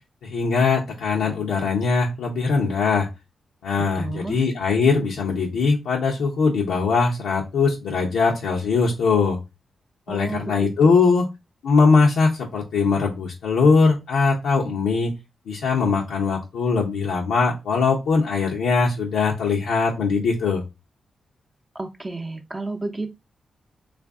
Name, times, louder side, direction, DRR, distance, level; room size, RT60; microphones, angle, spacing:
voice 1, 0.2-3.1 3.6-9.4 10.1-11.3 11.6-15.1 15.5-20.6, left 4 dB, 90° left, -3 dB, 0.6 m, -21 dB
voice 2, 3.9-4.4 10.1-11.2 21.7-23.1, right 3 dB, 25° right, 3 dB, 0.6 m, -32 dB
3.3 x 2.5 x 3.4 m, 0.23 s
cardioid pair, 60°, 0 cm